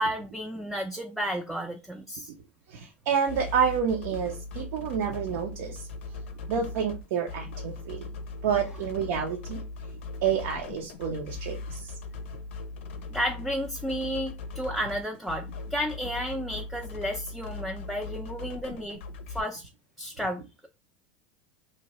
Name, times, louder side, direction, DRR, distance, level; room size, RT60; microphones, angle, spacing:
voice 1, 0.0-2.3 13.1-19.0 19.3-19.7 20.0-20.7, equal, ahead, 0.4 m, -32 dB
voice 2, 2.7-5.9 6.5-8.1 8.4-9.6 10.2-11.9, right 7 dB, 70° right, 0.6 m, -29 dB
sound 1, 3.3-19.4, left 3 dB, 80° left, 0.5 m, -39 dB
2.8 x 2.2 x 2.9 m
hypercardioid pair, 105°, 7 cm